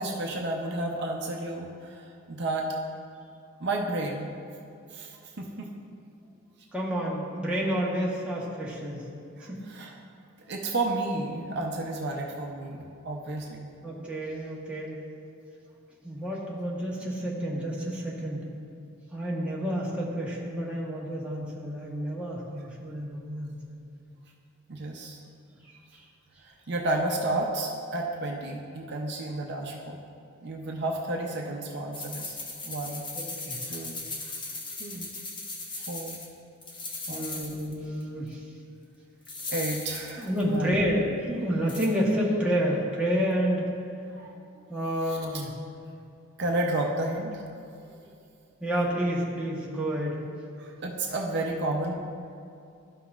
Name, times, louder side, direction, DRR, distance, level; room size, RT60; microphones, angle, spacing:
voice 1, 0.0-2.7 3.6-4.3 4.9-5.7 9.4-10.0 10.4-13.7 24.7-25.2 26.7-30.0 30.4-32.4 32.6-33.1 33.7-34.4 34.8-35.1 35.8-36.2 37.1-37.4 39.5-40.8 44.1-44.3 45.1-45.2 46.4-47.4 47.9-48.0 50.6-51.9, right 2 dB, 55° right, 0 dB, 0.6 m, -32 dB
voice 2, 6.7-9.0 9.4-9.6 13.8-15.0 16.0-18.5 19.1-23.8 25.5-26.1 33.1-33.6 37.1-38.4 40.2-43.7 44.7-45.5 48.6-50.2, equal, 5° right, -5 dB, 1.1 m, -29 dB
sound 1, 31.9-36.3 36.6-37.7 38.0-38.1 39.2-40.5 41.7-41.9, left 2 dB, 20° left, 0.8 m, -37 dB
12.5 x 5.7 x 2.4 m, 2.5 s
head